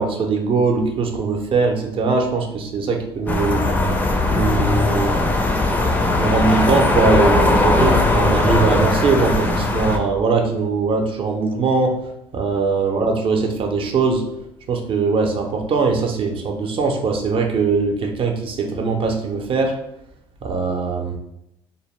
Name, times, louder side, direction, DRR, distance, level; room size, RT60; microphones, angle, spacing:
voice 1, 0.0-3.6 4.3-5.1 6.1-12.0 12.3-14.3 14.7-19.8 20.4-21.2, right 4 dB, 50° right, 4 dB, 0.6 m, -21 dB
sound 1, 3.3-10.0, left 2 dB, 15° left, 0.4 m, -18 dB
2.5 x 2.0 x 3.1 m, 0.83 s
supercardioid pair, 80°, 12 cm